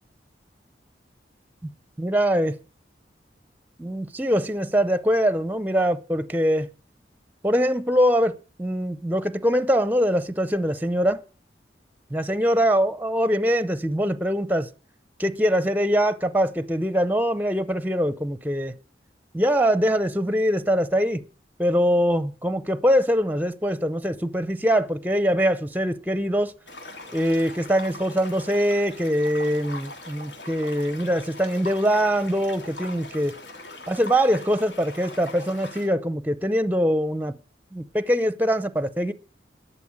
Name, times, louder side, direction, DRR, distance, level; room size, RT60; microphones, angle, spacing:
voice 1, 2.0-2.6 3.8-6.7 7.4-11.2 12.1-14.7 15.2-18.7 19.3-21.2 21.6-26.5 27.1-33.3 33.9-37.3 37.7-39.1, equal, 10° right, 0.6 m, -23 dB
sound 1, 26.7-35.9, left 2 dB, 85° left, 3.4 m, -41 dB
12.5 x 6.8 x 8.6 m
head